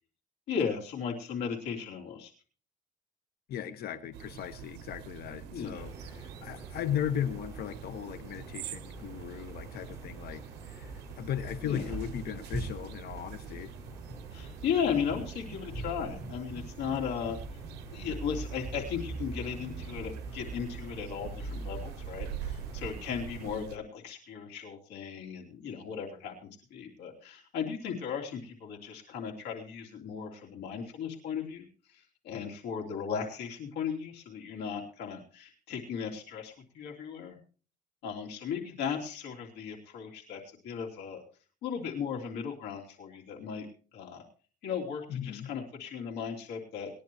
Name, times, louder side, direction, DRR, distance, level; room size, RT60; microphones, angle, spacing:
voice 1, 0.5-2.3 5.5-5.8 11.6-11.8 14.3-17.4 17.9-31.7 31.9-37.4 38.0-41.2 41.6-43.7 43.9-44.2 44.6-46.9, left 7 dB, 85° left, 0 dB, 3.2 m, -36 dB
voice 2, 3.5-13.7 45.1-45.5, left 9 dB, 70° left, 11 dB, 1.4 m, -37 dB
sound 1, 4.1-23.8, right 11 dB, 90° right, 0.6 m, -45 dB
sound 2, 5.7-23.5, right 2 dB, 20° right, 5.5 m, -43 dB
20.5 x 10.5 x 3.1 m, 0.39 s
cardioid pair, 110°, 17 cm